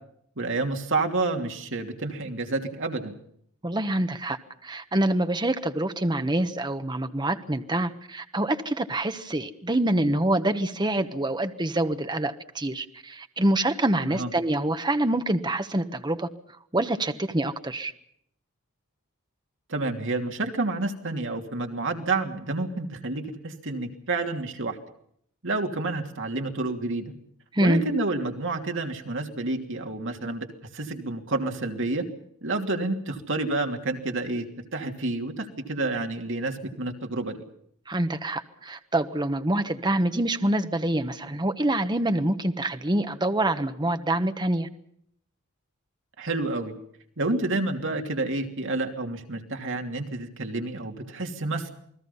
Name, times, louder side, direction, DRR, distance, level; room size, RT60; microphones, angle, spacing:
voice 1, 0.4-3.1 14.1-14.3 19.7-24.8 25.4-27.1 27.6-30.5 30.7-32.0 32.4-34.4 34.7-37.4 46.2-46.7 47.2-51.7, right 2 dB, 60° right, 4 dB, 2.9 m, -29 dB
voice 2, 3.6-16.3 16.7-17.9 27.5-27.8 37.9-44.7, right 1 dB, 20° right, 8 dB, 1.2 m, -26 dB
28.5 x 20.5 x 5.6 m, 0.69 s
head